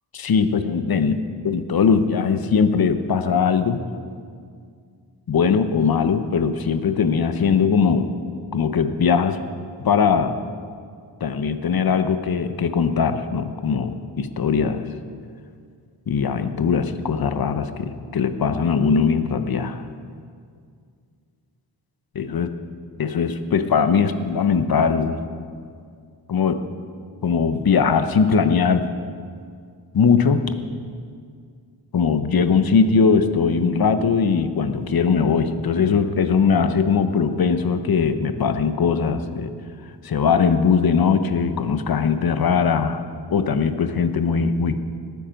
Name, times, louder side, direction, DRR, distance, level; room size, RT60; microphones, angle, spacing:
voice 1, 0.1-3.8 5.3-8.2 8.5-9.4 9.8-10.4 11.2-14.8 16.1-19.8 22.1-22.5 23.0-25.2 26.3-26.6 27.2-28.9 29.9-30.4 31.9-39.5 40.0-44.8, left 6 dB, 55° left, 9 dB, 0.9 m, -20 dB
19.0 x 9.5 x 5.2 m, 2.2 s
wide cardioid pair, 100°, 43 cm